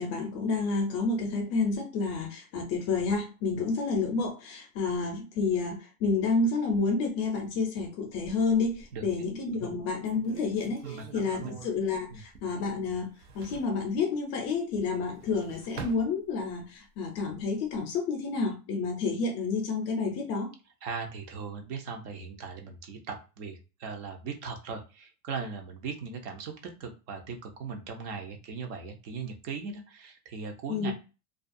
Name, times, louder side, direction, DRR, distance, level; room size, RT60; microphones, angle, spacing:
voice 1, 0.0-20.5 30.7-30.9, left 4 dB, 35° left, 0.5 m, -30 dB
sound 1, 8.1-9.1 9.6-9.7 10.0-12.7 13.0-13.8 14.9-16.7 17.1-17.8, right 5 dB, 85° right, 0.8 m, -46 dB
voice 2, 10.8-11.6 12.1-12.2 20.8-30.9, right 5 dB, 45° right, 0.6 m, -39 dB
2.4 x 2.2 x 2.5 m
supercardioid pair, 135°, 46 cm